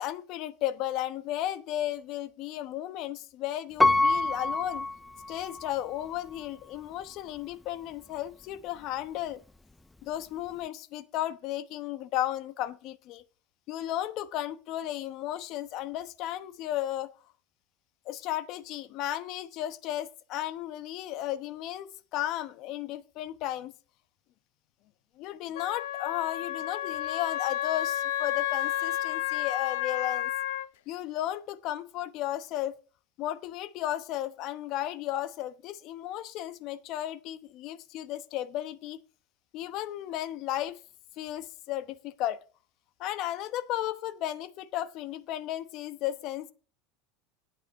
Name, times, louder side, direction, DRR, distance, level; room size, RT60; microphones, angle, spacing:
voice 1, 0.0-4.9 5.3-9.4 10.0-13.2 13.7-17.1 18.0-23.7 25.2-30.3 30.9-32.8 33.2-39.0 39.5-40.8 41.2-42.4 43.0-46.5, left 13 dB, 50° left, 0.9 m, -34 dB
Piano, 3.8-5.8 6.3-6.4, left 2 dB, 5° left, 0.5 m, -26 dB
Wind instrument woodwind instrument, 25.5-30.7, left 13 dB, 80° left, 0.8 m, -31 dB
9.9 x 9.0 x 4.7 m
supercardioid pair, 135°, 0 cm